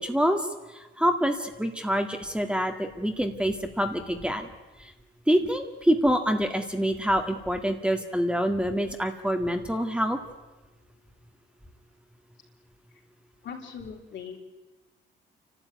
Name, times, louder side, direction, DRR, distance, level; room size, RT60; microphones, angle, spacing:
voice 1, 0.0-4.5 4.8-4.9 5.3-10.2, equal, 5° right, 5 dB, 2.0 m, -26 dB
voice 2, 13.4-14.4, left 7 dB, 65° left, 1 dB, 4.5 m, -40 dB
28.5 x 12.5 x 9.4 m, 1.1 s
cardioid pair, 90°, 20 cm